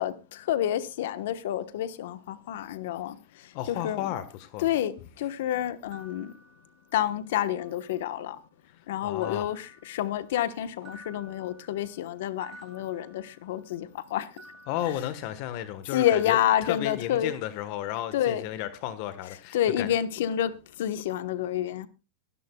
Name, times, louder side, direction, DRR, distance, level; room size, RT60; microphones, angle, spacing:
voice 1, 0.0-4.1 4.6-6.3 6.9-8.4 8.9-14.3 15.9-17.3 18.1-18.4 19.5-21.9, left 11 dB, 75° left, 1.2 m, -29 dB
voice 2, 3.5-4.7 9.0-9.5 14.7-19.9, left 12 dB, 50° left, 1.3 m, -33 dB
sound 1, 5.9-7.2 7.6-8.4 9.2-10.5 10.8-13.8 14.4-15.7 16.0-17.4, right 2 dB, 25° right, 7.5 m, -54 dB
23.5 x 11.5 x 2.3 m
supercardioid pair, 140°, 0 cm